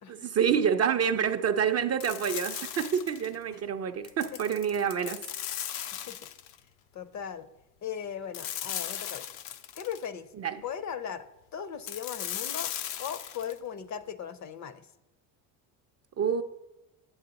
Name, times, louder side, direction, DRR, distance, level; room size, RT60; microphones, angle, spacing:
voice 1, 0.1-5.2 10.4-10.6 16.2-16.4, right 7 dB, 35° right, 0.4 m, -27 dB
sound 1, 2.0-3.4 4.0-6.6 8.3-10.1 11.9-13.6, left 10 dB, 85° left, 0.7 m, -37 dB
voice 2, 6.9-7.5 7.8-9.3 9.8-10.3 10.6-11.3 11.5-12.7 13.0-14.9, left 8 dB, 40° left, 0.6 m, -38 dB
8.4 x 7.8 x 3.9 m
supercardioid pair, 100°, 47 cm